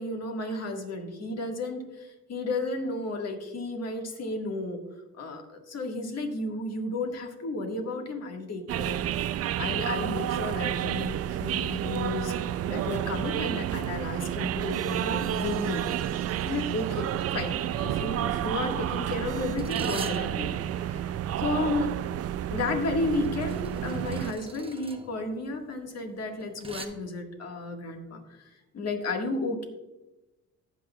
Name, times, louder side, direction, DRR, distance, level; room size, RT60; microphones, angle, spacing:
voice 1, 0.0-4.8 5.1-15.8 16.4-21.1 21.4-21.9 22.5-29.6, left 2 dB, 55° left, 3 dB, 1.7 m, -33 dB
sound 1, 8.7-24.3, right 11 dB, 55° right, 0.4 m, -30 dB
sound 2, 12.4-19.6, right 9 dB, 90° right, 0.7 m, -41 dB
sound 3, 17.3-17.6 18.3-26.8, right 2 dB, 20° right, 0.9 m, -45 dB
18.0 x 6.3 x 2.3 m, 1.0 s
cardioid pair, 90°, 30 cm